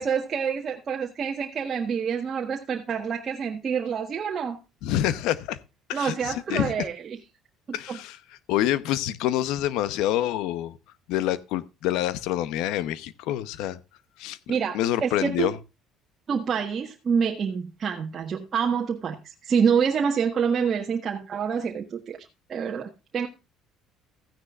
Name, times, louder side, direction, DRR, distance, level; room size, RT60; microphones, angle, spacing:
voice 1, 0.0-4.6 5.9-7.2 7.7-8.0 14.5-15.5 16.3-23.3, right 6 dB, 40° right, 1.4 m, -27 dB
voice 2, 4.8-5.6 5.9-6.7 7.7-8.2 8.5-10.8 11.1-13.8 14.2-15.5, left 13 dB, 80° left, 0.8 m, -27 dB
15.0 x 9.8 x 2.4 m
cardioid pair, 110°, 0 cm